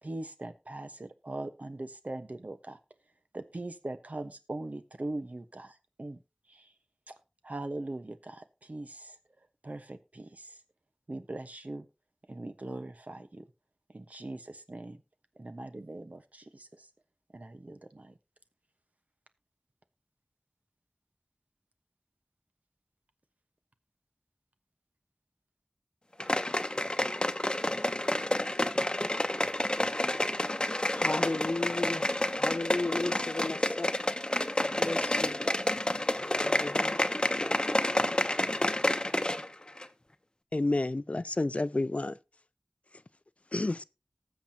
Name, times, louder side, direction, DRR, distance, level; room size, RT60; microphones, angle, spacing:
voice 1, 0.0-2.8 3.3-6.2 6.5-6.7 7.4-9.2 9.6-10.6 11.1-11.9 12.3-13.4 13.9-15.0 15.4-16.9 17.3-18.1, right 2 dB, 75° right, 1.1 m, -41 dB
sound 1, 26.2-39.5 39.8-39.9, left 1 dB, 35° left, 0.8 m, -29 dB
voice 2, 30.9-33.9 34.6-35.5 36.4-37.0, left 2 dB, 75° left, 1.0 m, -35 dB
voice 3, 40.5-42.2 43.5-43.8, left 2 dB, 55° left, 0.5 m, -29 dB
19.0 x 7.1 x 2.8 m
wide cardioid pair, 45°, 3 cm